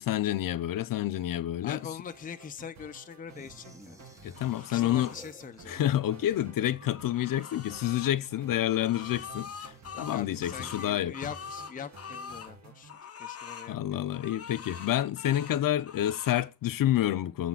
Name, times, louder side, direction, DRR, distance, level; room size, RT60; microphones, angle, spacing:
voice 1, 0.0-1.8 4.2-5.1 5.7-11.1 13.7-17.5, left 12 dB, 80° left, 0.5 m, -28 dB
voice 2, 1.6-4.0 4.5-5.9 9.9-12.9 13.2-14.3 15.3-15.6, left 7 dB, 25° left, 0.4 m, -43 dB
sound 1, 1.7-13.0, right 4 dB, 55° right, 1.6 m, -52 dB
sound 2, 3.3-5.9 6.1-6.9 8.9-11.4, right 1 dB, 10° right, 0.7 m, -54 dB
sound 3, 4.4-5.2 6.6-8.1 8.6-12.5 12.9-13.7 14.1-15.6 15.9-16.5, left 6 dB, 45° left, 0.8 m, -44 dB
6.7 x 4.3 x 5.7 m
wide cardioid pair, 180°, 33 cm